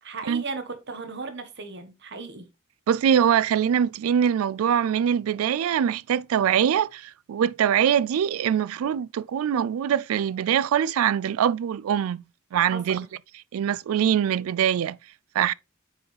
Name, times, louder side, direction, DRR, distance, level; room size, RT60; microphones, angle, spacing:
voice 1, 0.0-2.5 12.7-13.1, right 4 dB, 55° right, 1.3 m, -36 dB
voice 2, 2.9-12.2 12.5-13.1 13.5-15.0 15.4-15.5, right 8 dB, 80° right, 0.3 m, -23 dB
8.8 x 4.7 x 3.3 m
head